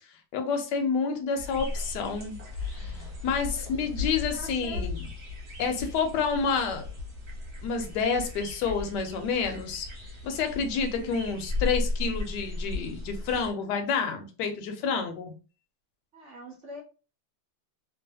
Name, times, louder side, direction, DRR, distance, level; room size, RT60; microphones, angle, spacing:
voice 1, 0.3-2.4 2.7-5.0 5.6-6.9 7.6-9.9 10.2-15.3, left 5 dB, 70° left, 1.1 m, -29 dB
sound 1, 1.4-13.5, left 3 dB, 40° right, 1.2 m, -36 dB
voice 2, 3.9-4.8 10.9-11.2 16.1-16.8, equal, 75° right, 0.6 m, -44 dB
3.1 x 2.5 x 2.7 m
omnidirectional pair, 2.2 m